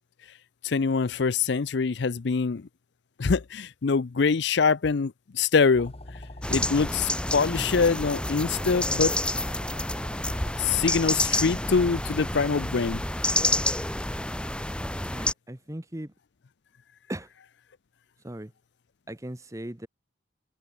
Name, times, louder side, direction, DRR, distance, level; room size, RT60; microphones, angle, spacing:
voice 1, 0.6-2.7 3.2-5.9 6.5-9.1 10.6-13.0, left 5 dB, 60° left, 0.5 m, -24 dB
sound 1, 5.7-11.7, left 1 dB, 30° left, 1.6 m, -42 dB
sound 2, 6.4-15.3, left 1 dB, 5° left, 1.9 m, -29 dB
voice 2, 15.1-16.1 17.1-17.3 18.2-18.5 19.1-19.9, right 1 dB, 15° right, 1.0 m, -38 dB
head